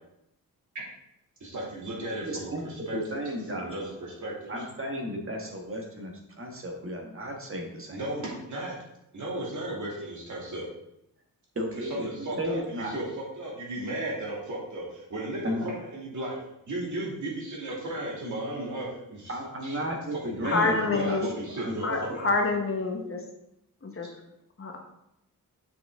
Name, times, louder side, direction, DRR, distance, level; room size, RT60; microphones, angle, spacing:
voice 1, 1.4-3.2 3.5-4.5 7.9-8.8 9.1-10.7 11.8-16.4 16.7-19.3 19.6-19.8 20.2-22.3, right 1 dB, 55° right, -3 dB, 2.4 m, -35 dB
voice 2, 2.2-3.9 4.5-8.0 11.5-12.9 15.4-15.6 19.3-22.0, equal, 40° right, 1 dB, 1.4 m, -34 dB
voice 3, 20.4-21.3 21.8-23.2 23.8-24.1 24.6-24.8, left 3 dB, 40° left, 2 dB, 1.1 m, -27 dB
7.0 x 5.9 x 3.6 m, 0.81 s
wide cardioid pair, 130°, 35 cm